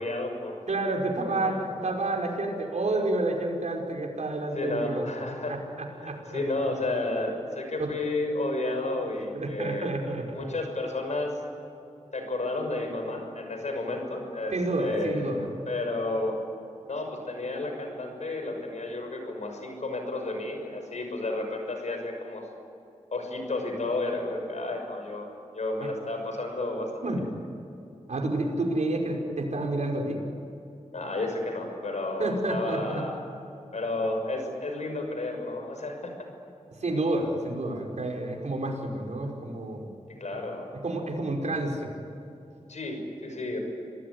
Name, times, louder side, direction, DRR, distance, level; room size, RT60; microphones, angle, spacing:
voice 1, 0.0-0.6 1.3-1.6 4.5-5.6 6.0-9.9 10.3-11.3 12.1-14.5 14.8-15.3 15.7-16.4 16.9-22.5 23.1-25.3 25.5-27.2 30.9-33.2 33.7-36.1 40.2-40.7 42.7-43.6, left 2 dB, 70° left, 4 dB, 6.3 m, -32 dB
voice 2, 0.7-5.0 5.5-6.2 7.8-7.9 9.3-10.4 14.5-15.5 25.8-25.9 27.0-27.2 28.1-30.2 32.2-33.0 36.8-39.9 40.8-41.9, right 2 dB, 70° right, 0 dB, 5.3 m, -29 dB
27.5 x 19.0 x 9.8 m, 2.7 s
wide cardioid pair, 65°, 12 cm